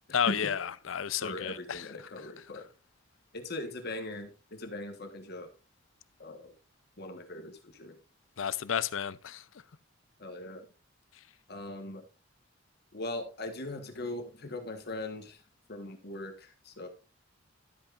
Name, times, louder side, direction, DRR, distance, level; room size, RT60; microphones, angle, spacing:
voice 1, 0.1-0.6 0.9-1.8 8.4-9.4, left 8 dB, 90° left, 0.5 m, -31 dB
voice 2, 1.2-2.7 3.3-5.5 6.2-6.5 7.0-8.0 10.2-10.7 11.5-12.0 12.9-15.4 15.7-16.9, left 2 dB, 55° left, 1.3 m, -40 dB
12.5 x 8.7 x 2.5 m
head